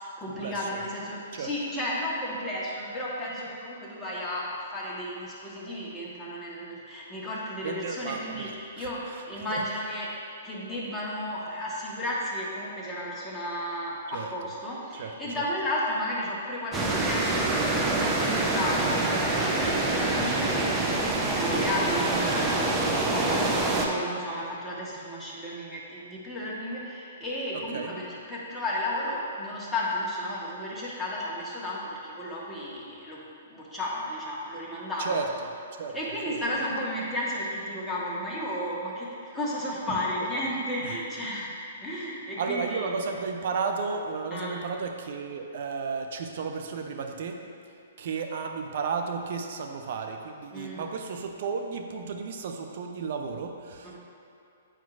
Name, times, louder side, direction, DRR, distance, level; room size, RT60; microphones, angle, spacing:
voice 1, 0.0-10.1 10.4-20.7 21.3-35.2 35.9-42.9 44.3-44.6 50.5-50.9 53.8-54.0, left 1 dB, 10° left, -7 dB, 1.4 m, -33 dB
voice 2, 7.6-8.5 8.8-9.2 9.5-9.6 14.1-14.3 14.9-15.4 19.7-19.8 27.5-27.9 35.0-35.3 35.8-35.9 36.3-36.4 40.8-40.9 42.4-47.4 48.0-54.0, right 5 dB, 55° right, 4 dB, 0.6 m, -33 dB
sound 1, 16.7-23.9, right 2 dB, 15° right, 0.7 m, -26 dB
8.8 x 4.5 x 2.5 m, 2.7 s
hypercardioid pair, 120°, 0 cm